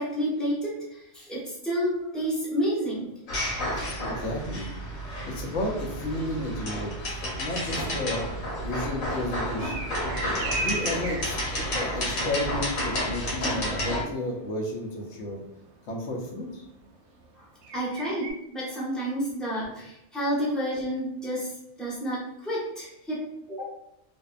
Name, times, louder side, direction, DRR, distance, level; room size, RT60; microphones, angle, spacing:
voice 1, 0.0-3.2 17.4-17.5 17.7-23.6, equal, ahead, -8 dB, 0.5 m, -30 dB
sound 1, 3.3-14.0, equal, 90° left, 1.2 m, -31 dB
voice 2, 3.7-4.7 5.2-8.2 8.6-9.9 10.6-15.4 15.9-16.7, left 1 dB, 65° left, 0 dB, 0.8 m, -32 dB
sound 2, 7.0-18.3, right 3 dB, 70° right, 0.8 m, -38 dB
2.5 x 2.1 x 2.4 m, 0.84 s
omnidirectional pair, 1.4 m